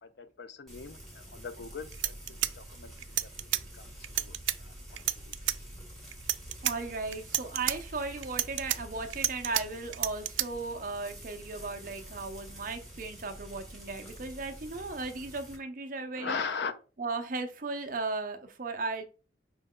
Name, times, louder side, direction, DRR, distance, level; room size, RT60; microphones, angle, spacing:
voice 1, 0.0-2.2 2.6-2.9 3.8-3.9 4.2-4.3 4.6-4.7 16.2-16.7, left 5 dB, 65° left, 0.5 m, -38 dB
Frying (food), 0.7-15.6, right 1 dB, ahead, 1.3 m, -47 dB
sound 1, 1.6-1.7 1.9-3.6 4.0-4.6 5.0-5.6 6.1-6.7 7.1-7.8 8.2-9.6 9.9-10.5, right 15 dB, 85° right, 0.3 m, -30 dB
voice 2, 6.6-16.4 17.0-19.0, right 3 dB, 45° right, 0.6 m, -36 dB
5.3 x 2.3 x 3.6 m
head